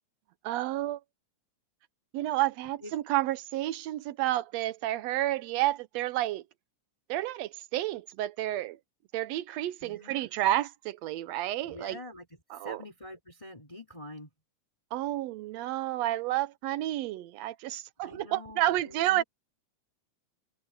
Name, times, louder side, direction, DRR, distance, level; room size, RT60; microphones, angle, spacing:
voice 1, 0.4-1.0 2.1-6.4 7.1-8.8 9.1-12.0 12.5-12.8 14.9-19.2, right 15 dB, 80° right, 1.6 m, -30 dB
voice 2, 9.8-10.3 11.6-12.3 12.5-14.3 18.0-19.2, left 1 dB, 10° left, 5.1 m, -46 dB
omnidirectional pair, 3.4 m